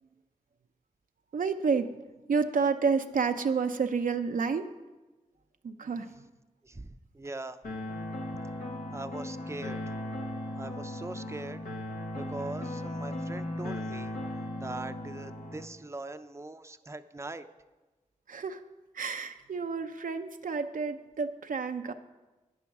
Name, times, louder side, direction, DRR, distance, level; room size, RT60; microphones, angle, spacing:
voice 1, 1.3-1.9 2.3-4.7 5.6-6.1 18.3-18.6 18.9-21.9, right 5 dB, 75° right, 7 dB, 0.6 m, -29 dB
voice 2, 6.6-7.6 8.9-9.8 10.6-11.6 12.2-17.5, right 2 dB, 20° right, 9 dB, 0.6 m, -41 dB
sound 1, 7.6-15.7, left 1 dB, 85° left, 1.5 m, -37 dB
10.0 x 9.7 x 6.0 m, 1.2 s
cardioid pair, 40°, 14 cm